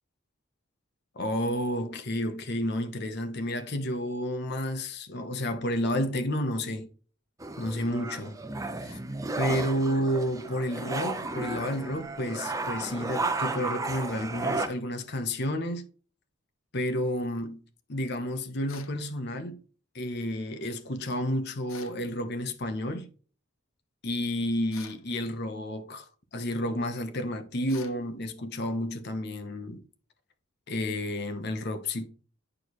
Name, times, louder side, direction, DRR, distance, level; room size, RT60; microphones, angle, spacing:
voice 1, 1.2-6.9 7.6-8.4 8.8-9.0 9.4-15.8 16.7-17.6 17.9-19.6 19.9-23.1 24.0-29.8 30.7-32.1, equal, 50° left, 1.0 m, -31 dB
sound 1, 7.4-14.7, right 2 dB, 15° right, 0.7 m, -33 dB
sound 2, 18.7-19.0 21.7-22.0 24.7-25.1 27.7-28.0, left 8 dB, 75° left, 0.8 m, -47 dB
8.8 x 4.7 x 3.0 m
head